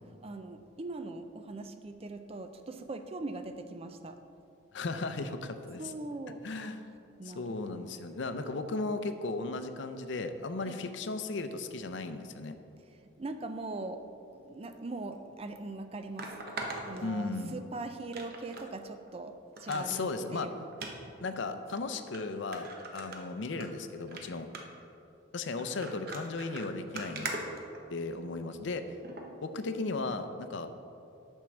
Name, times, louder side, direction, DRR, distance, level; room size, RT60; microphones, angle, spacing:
voice 1, 0.2-4.2 5.8-6.5 7.2-7.8 10.6-10.8 12.8-14.1 14.3-16.4 16.8-20.6, right 2 dB, 30° right, 8 dB, 0.4 m, -41 dB
voice 2, 4.7-5.9 6.4-6.8 7.2-12.5 17.0-17.6 19.7-20.5 21.2-24.5 25.3-27.3 27.9-28.8 29.4-30.7, left 3 dB, 60° left, 9 dB, 0.5 m, -36 dB
sound 1, 15.1-15.2 16.2-17.6 18.1-18.7 19.1-19.2 19.6-20.0 20.7-20.9 21.7-21.8 22.1-22.2 22.5-23.7 24.0-24.2 24.5-24.8 25.6-28.3 29.0-29.3 29.8-29.9, right 2 dB, 50° right, 0.9 m, -41 dB
9.2 x 4.5 x 6.3 m, 2.6 s
head